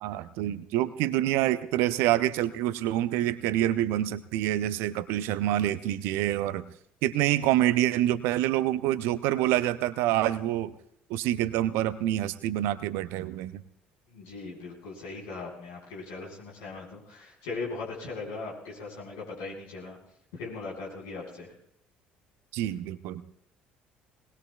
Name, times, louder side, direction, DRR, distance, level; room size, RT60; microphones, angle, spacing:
voice 1, 0.0-6.7 7.0-10.7 11.1-13.6 22.5-23.2, right 13 dB, 60° right, 16 dB, 0.6 m, -27 dB
voice 2, 14.1-20.0 20.3-21.5, left 3 dB, 65° left, -3 dB, 4.6 m, -39 dB
20.5 x 20.0 x 2.3 m, 0.70 s
figure-of-eight pair, 55°, 5 cm